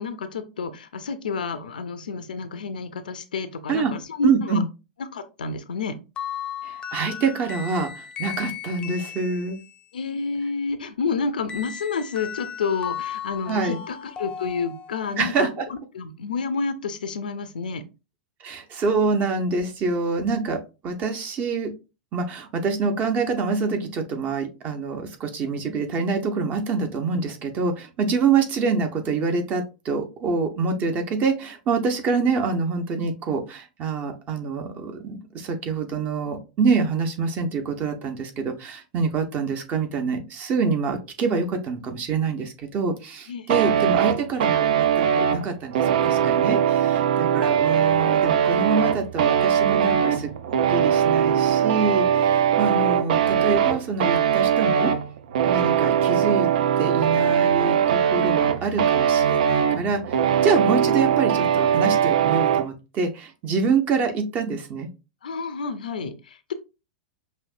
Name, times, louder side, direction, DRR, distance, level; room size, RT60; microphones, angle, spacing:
voice 1, 0.0-4.6 5.0-5.9 9.9-17.8 43.3-43.5 65.2-66.5, left 4 dB, 70° left, 0.5 m, -29 dB
voice 2, 4.2-4.6 6.6-9.6 13.5-13.8 15.2-15.6 18.4-21.7 22.1-50.3 50.7-54.9 55.5-56.5 56.8-64.9, right 4 dB, 30° right, 0.9 m, -26 dB
sound 1, 6.2-9.9 11.5-15.3, left 9 dB, 20° left, 0.6 m, -36 dB
sound 2, 43.5-62.7, right 8 dB, 55° right, 0.4 m, -21 dB
5.4 x 2.7 x 2.4 m
figure-of-eight pair, 95°, 5 cm